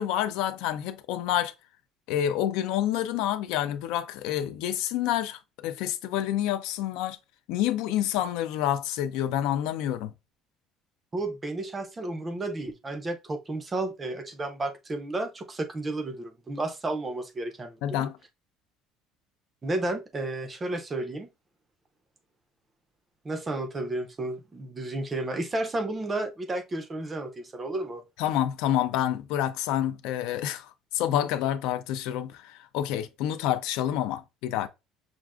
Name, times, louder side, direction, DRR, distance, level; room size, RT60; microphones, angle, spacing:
voice 1, 0.0-1.5 2.1-7.2 7.5-10.1 17.8-18.1 28.2-34.7, left 11 dB, 70° left, 0.4 m, -28 dB
voice 2, 11.1-17.8 19.6-21.3 23.2-28.0, right 2 dB, 15° right, 0.5 m, -32 dB
6.0 x 2.5 x 2.3 m
cardioid pair, 180°, 0 cm